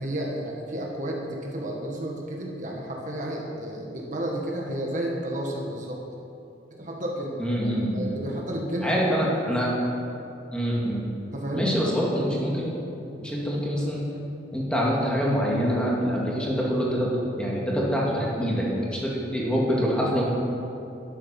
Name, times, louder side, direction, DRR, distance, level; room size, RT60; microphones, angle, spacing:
voice 1, 0.0-6.0 6.8-7.4 7.9-9.1 9.4-9.5 11.3-11.8, right 1 dB, 45° right, -1 dB, 1.5 m, -31 dB
voice 2, 7.4-8.0 8.8-9.7 10.5-11.1 11.5-12.7 13.2-14.0 14.5-17.1 17.4-18.7 18.9-20.2, equal, 5° left, -5 dB, 2.3 m, -25 dB
11.5 x 10.5 x 5.9 m, 2.8 s
head